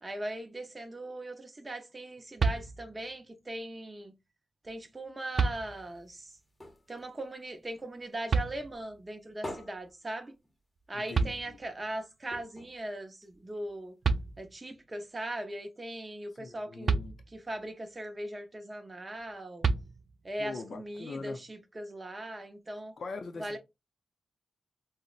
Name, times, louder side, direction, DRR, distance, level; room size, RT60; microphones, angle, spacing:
voice 1, 0.0-4.1 4.6-6.3 6.9-10.3 10.9-13.9 14.4-17.0 17.3-19.7 20.2-23.0 23.4-23.6, right 1 dB, 30° right, 0.7 m, -39 dB
sound 1, 2.4-3.1 4.7-4.8 5.3-6.1 8.3-9.1 10.8-10.9 11.1-12.0 13.7-13.8 14.0-14.8 16.8-17.7 19.6-20.4, right 4 dB, 60° right, 0.3 m, -31 dB
sound 2, 5.7-8.3 8.7-11.0 11.3-11.4 11.7-11.8 12.3-13.8 14.4-14.5, left 1 dB, 20° left, 0.9 m, -47 dB
voice 2, 10.9-11.7 16.3-17.1 20.4-21.4 23.0-23.6, left 4 dB, 65° left, 0.5 m, -42 dB
4.0 x 2.1 x 2.3 m
cardioid pair, 60°, 0 cm